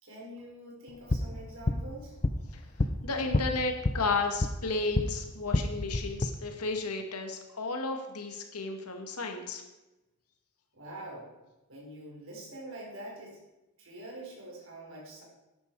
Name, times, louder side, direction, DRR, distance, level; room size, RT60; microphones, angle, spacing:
voice 1, 0.0-2.2 10.7-11.3 11.7-13.4 13.8-15.2, right 1 dB, 60° right, -3 dB, 4.6 m, -45 dB
sound 1, 0.9-5.1 5.4-6.3, left 2 dB, 30° left, 0.5 m, -30 dB
voice 2, 3.0-9.6, left 3 dB, 85° left, 4 dB, 1.9 m, -33 dB
12.0 x 10.0 x 4.7 m, 1.0 s
head